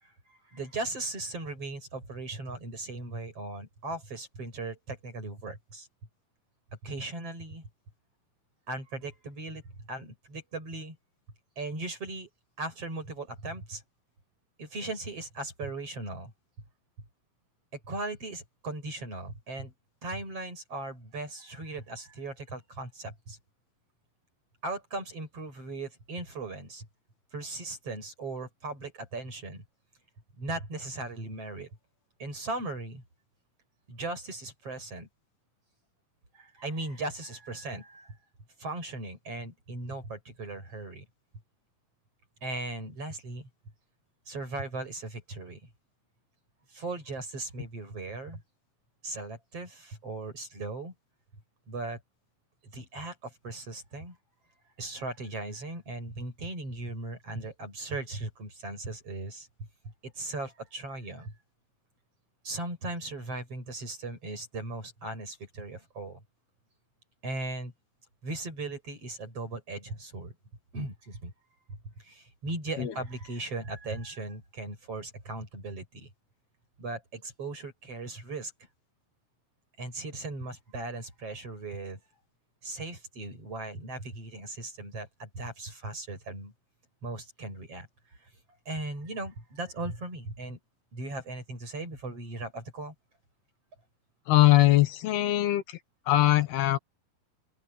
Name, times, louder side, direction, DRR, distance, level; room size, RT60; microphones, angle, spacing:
voice 1, 0.3-5.9 6.8-7.6 8.7-9.6 9.9-11.0 11.6-12.3 12.6-13.8 14.6-16.3 17.7-19.7 20.0-23.4 24.6-26.9 27.3-29.6 30.4-31.7 32.2-33.0 33.9-35.1 36.3-38.1 38.6-41.1 42.4-43.5 44.3-45.6 46.7-48.4 49.0-50.9 51.7-52.0 52.7-54.2 54.8-59.5 60.0-61.3 62.4-66.2 67.2-67.7 68.2-70.3 70.7-71.3 71.7-76.1 76.8-78.5 79.8-82.0 82.6-86.5 87.0-87.9 88.7-90.6 90.9-92.9, right 2 dB, 35° right, 9.0 m, -38 dB
voice 2, 94.3-95.8 96.1-96.8, left 16 dB, 85° left, 3.4 m, -21 dB
open air
omnidirectional pair, 4.4 m